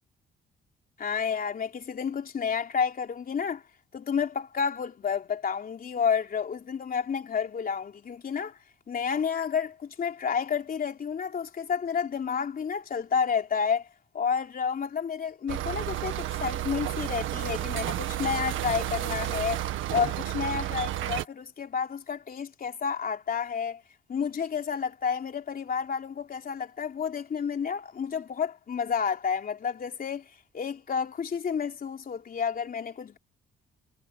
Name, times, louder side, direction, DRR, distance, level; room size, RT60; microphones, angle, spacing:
voice 1, 1.0-3.6 3.9-8.6 8.9-13.9 14.1-19.6 19.9-23.8 24.1-33.2, left 6 dB, 45° left, 3.4 m, -30 dB
sound 1, 15.5-21.3, right 13 dB, 80° right, 1.7 m, -31 dB
cardioid pair, 90°, 20 cm